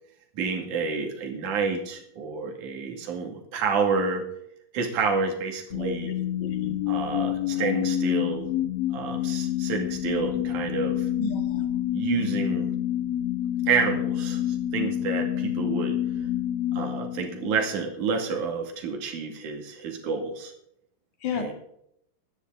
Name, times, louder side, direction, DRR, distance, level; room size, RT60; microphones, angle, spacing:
voice 1, 0.4-4.3 4.7-6.1 6.9-8.5 8.9-11.1 11.9-12.7 13.7-16.0 16.7-20.5 21.3-21.5, right 5 dB, 55° right, 2 dB, 3.4 m, -29 dB
sound 1, 5.7-17.9, left 12 dB, 60° left, 1.6 m, -28 dB
voice 2, 5.8-6.8 7.6-7.7 11.2-11.7 21.2-21.5, left 4 dB, 40° left, 4 dB, 1.8 m, -33 dB
22.0 x 9.9 x 3.8 m, 0.74 s
omnidirectional pair, 4.5 m